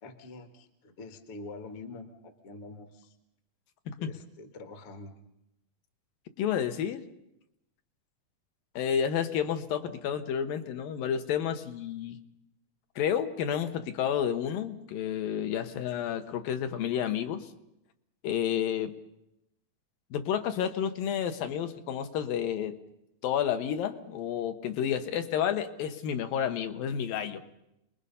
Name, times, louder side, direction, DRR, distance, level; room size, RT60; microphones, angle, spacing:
voice 1, 0.0-3.2 4.0-5.1, left 3 dB, 50° left, 7 dB, 2.0 m, -45 dB
voice 2, 6.4-7.0 8.8-12.2 13.0-17.5 18.2-18.9 20.1-22.8 23.2-27.4, left 9 dB, 70° left, 7 dB, 2.7 m, -30 dB
30.0 x 20.5 x 5.6 m, 0.85 s
omnidirectional pair, 4.4 m